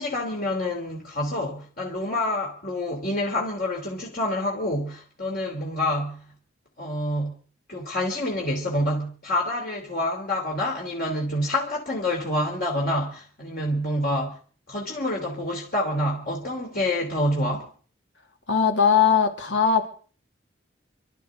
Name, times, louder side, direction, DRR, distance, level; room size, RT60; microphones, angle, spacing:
voice 1, 0.0-6.2 6.8-7.3 7.7-14.4 14.7-17.7, left 1 dB, 55° left, -2 dB, 3.4 m, -27 dB
voice 2, 18.5-19.9, left 7 dB, 80° left, 4 dB, 2.5 m, -20 dB
28.5 x 12.0 x 3.9 m, 0.42 s
head